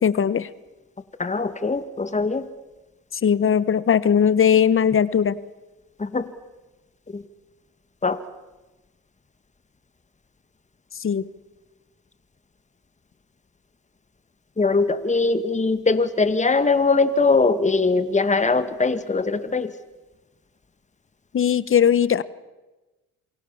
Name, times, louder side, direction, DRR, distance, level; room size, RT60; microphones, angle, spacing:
voice 1, 0.0-0.5 3.2-5.3 11.0-11.2 21.3-22.2, left 8 dB, 45° left, 17 dB, 1.1 m, -19 dB
voice 2, 1.2-2.5 6.0-6.3 7.1-7.2 8.0-8.2 14.6-19.7, left 3 dB, 25° left, 11 dB, 2.0 m, -21 dB
27.5 x 23.0 x 7.2 m, 1.1 s
cardioid pair, 90°, 30 cm